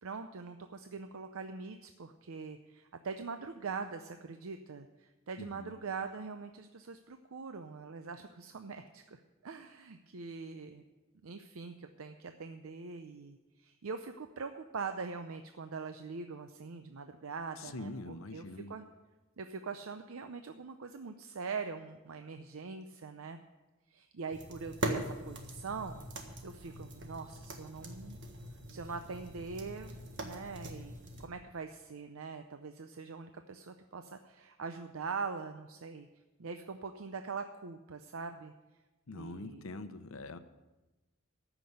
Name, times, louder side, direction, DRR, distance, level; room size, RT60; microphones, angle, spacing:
voice 1, 0.0-10.8 11.2-18.4 18.7-18.9 19.4-23.4 23.9-28.2 28.7-30.9 31.2-36.1 36.4-38.5 39.1-39.7, right 4 dB, 80° right, 7 dB, 0.6 m, -43 dB
voice 2, 5.4-5.7 17.6-18.7 39.1-40.4, left 2 dB, 75° left, 10 dB, 0.8 m, -44 dB
sound 1, 24.3-31.3, right 1 dB, 60° right, 1.6 m, -42 dB
13.5 x 6.0 x 8.1 m, 1.1 s
head